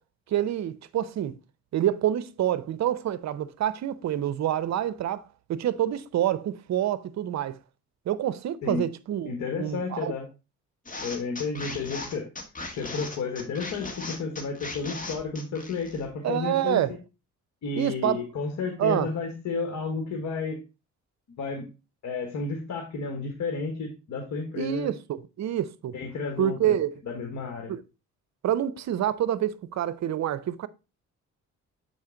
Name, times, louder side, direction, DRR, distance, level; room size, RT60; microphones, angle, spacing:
voice 1, 0.3-1.4 1.7-5.2 5.5-7.6 8.1-9.3 9.6-10.1 16.2-16.9 17.8-18.2 18.8-19.1 24.6-25.9 26.4-26.9 27.7-27.8 28.4-30.7, right 11 dB, 65° right, 0.7 m, -27 dB
voice 2, 9.3-10.3 11.0-12.3 12.8-17.0 17.6-20.6 21.4-21.7 22.0-24.9 25.9-26.8 27.1-27.7, left 4 dB, 70° left, 1.6 m, -32 dB
sound 1, 10.8-16.1, left 3 dB, 25° left, 1.8 m, -38 dB
7.2 x 5.1 x 3.8 m
cardioid pair, 90°, 30 cm